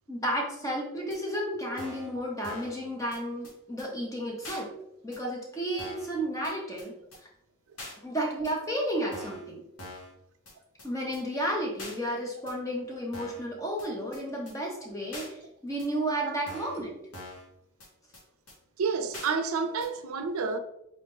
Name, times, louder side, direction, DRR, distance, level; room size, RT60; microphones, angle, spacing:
voice 1, 0.1-4.7 5.0-6.9 8.0-9.6 10.8-17.0, equal, 15° left, 0.9 m, -32 dB
sound 1, 1.1-1.2 1.8-2.1 2.4-2.8 3.1-3.2 3.4-3.5 3.8-3.9 4.4-4.6 5.1-5.2 5.8-6.1 6.4-6.5 6.8-6.9 7.1-7.2 7.8-8.0 8.5-8.6 9.1-9.5 9.8-10.1 10.5-10.6 10.8-10.9 11.1-11.2 11.8-12.0 12.5-12.6 13.1-13.5 13.8-13.9 14.1-14.2 14.5-14.6 15.1-15.3 15.8-15.9 16.5-16.8 17.1-17.5 17.8-17.9 18.1-18.2 18.5-18.6 19.1-19.3 19.8-19.9, left 1 dB, 90° left, 1.4 m, -43 dB
voice 2, 18.8-20.6, right 5 dB, 85° right, 0.4 m, -30 dB
4.2 x 3.2 x 3.2 m
head